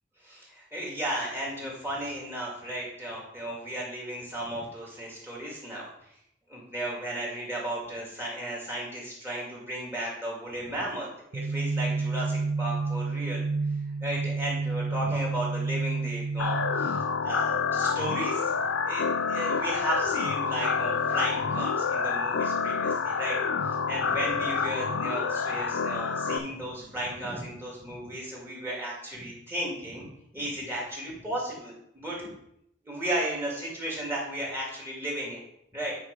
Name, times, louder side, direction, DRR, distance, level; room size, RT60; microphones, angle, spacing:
voice 1, 0.2-6.1 6.5-13.4 14.0-18.5 18.8-23.4 23.6-30.1 30.3-32.3 32.8-35.4 35.7-36.0, right 1 dB, 10° right, -4 dB, 2.1 m, -34 dB
sound 1, 11.3-16.9, right 4 dB, 75° right, 0.5 m, -30 dB
sound 2, 16.4-26.4, left 5 dB, 80° left, 0.6 m, -28 dB
8.9 x 3.8 x 5.3 m, 0.77 s
head